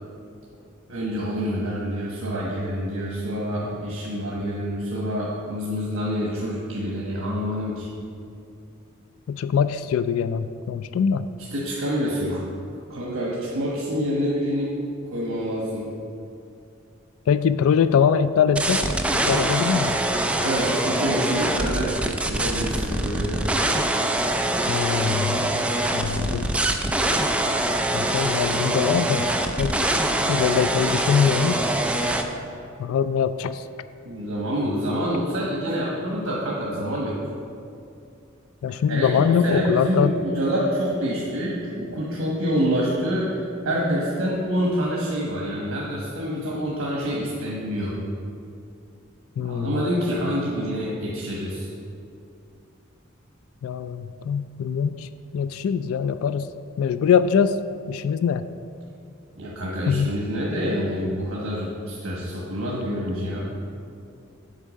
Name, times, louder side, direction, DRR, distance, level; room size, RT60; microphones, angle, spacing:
voice 1, 0.9-7.9 11.5-12.4 12.9-14.8 15.1-15.9 20.4-21.9 22.2-23.4 34.0-37.2 38.9-43.4 43.6-48.0 49.4-51.7 59.3-63.5, equal, 85° right, -4 dB, 1.2 m, -27 dB
voice 2, 9.3-11.3 17.3-18.9 19.1-20.0 24.7-25.5 25.9-26.5 27.9-29.3 29.6-29.9 30.3-31.6 32.8-33.6 38.6-40.2 49.4-49.8 53.6-56.5 56.8-57.6 57.9-58.5 59.9-60.1, left 7 dB, 80° left, 13 dB, 0.3 m, -23 dB
sound 1, 18.6-32.2, right 1 dB, 5° right, 0.4 m, -24 dB
8.0 x 4.5 x 6.3 m, 2.5 s
head